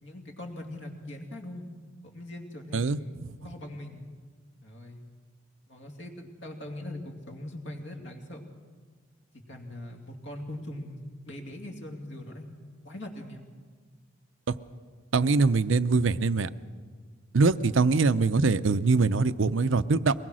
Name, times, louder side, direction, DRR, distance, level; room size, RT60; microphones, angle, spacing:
voice 1, 0.0-1.7 2.0-3.2 3.4-4.1 4.6-5.0 5.7-8.4 9.5-12.6 12.8-13.4, left 1 dB, 60° left, 2 dB, 2.7 m, -41 dB
voice 2, 2.7-3.3 15.1-16.5 17.3-20.1, right 4 dB, 70° right, 14 dB, 0.6 m, -23 dB
23.0 x 19.5 x 6.3 m, 1.5 s
head